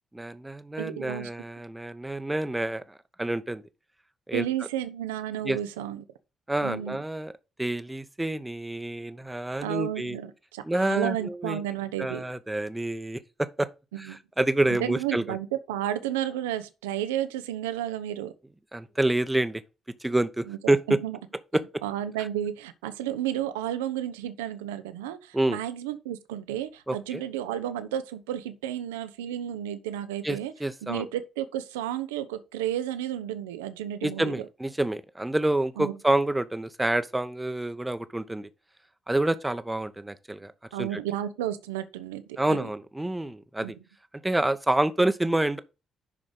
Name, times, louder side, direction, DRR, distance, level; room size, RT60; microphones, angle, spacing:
voice 1, 0.1-3.6 4.3-4.4 5.4-5.6 6.5-7.3 7.6-10.2 10.6-11.6 12.0-13.7 14.0-15.4 18.7-19.6 20.0-21.0 21.5-21.6 25.3-25.6 26.9-27.2 30.2-31.1 34.0-38.5 39.1-40.5 40.8-41.0 42.4-43.8 44.2-45.6, right 1 dB, 10° right, 1.0 m, -28 dB
voice 2, 0.8-1.3 4.3-6.0 6.6-7.0 9.6-12.2 13.9-14.2 14.7-18.3 20.5-21.2 21.8-30.5 30.8-34.3 35.8-35.9 40.7-42.7 43.6-43.7, right 11 dB, 75° right, 0.8 m, -32 dB
11.0 x 4.9 x 3.9 m
figure-of-eight pair, 40°, 0 cm